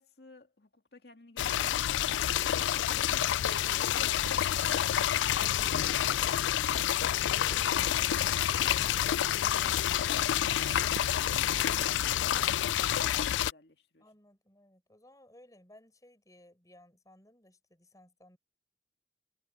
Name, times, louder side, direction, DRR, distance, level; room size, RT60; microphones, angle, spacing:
voice 1, 0.0-2.3 2.9-4.6 11.3-14.1, left 2 dB, 60° left, 2.3 m, -54 dB
sound 1, 1.4-13.5, left 11 dB, 90° left, 0.3 m, -28 dB
sound 2, 3.8-11.9, right 7 dB, 85° right, 0.6 m, -49 dB
sound 3, 9.4-13.3, right 2 dB, 30° right, 2.1 m, -62 dB
voice 2, 14.0-18.4, left 1 dB, 20° left, 7.7 m, -59 dB
head